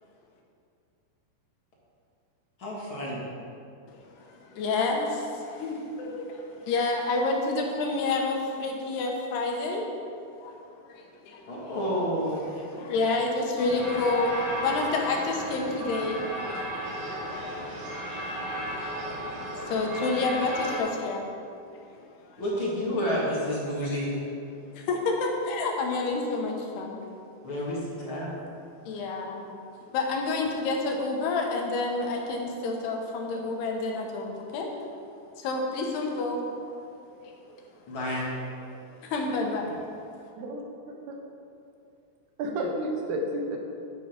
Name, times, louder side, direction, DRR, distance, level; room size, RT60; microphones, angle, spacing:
voice 1, 2.6-3.2 11.5-12.4 22.4-24.2 27.4-28.3 37.9-38.3, equal, 40° left, -5 dB, 2.2 m, -29 dB
voice 2, 3.9-9.9 10.4-10.6 10.9-11.7 12.3-21.3 21.7-22.4 24.7-27.0 28.9-29.6 29.9-34.7 35.4-36.4 37.2-37.3 38.6-39.9, left 3 dB, 85° left, 1 dB, 3.4 m, -30 dB
sound 1, 13.6-20.8, right 1 dB, 40° right, 3.0 m, -34 dB
voice 3, 40.4-41.2 42.4-43.6, right 1 dB, 85° right, 1 dB, 3.3 m, -32 dB
11.0 x 9.4 x 5.2 m, 2.5 s
omnidirectional pair, 4.6 m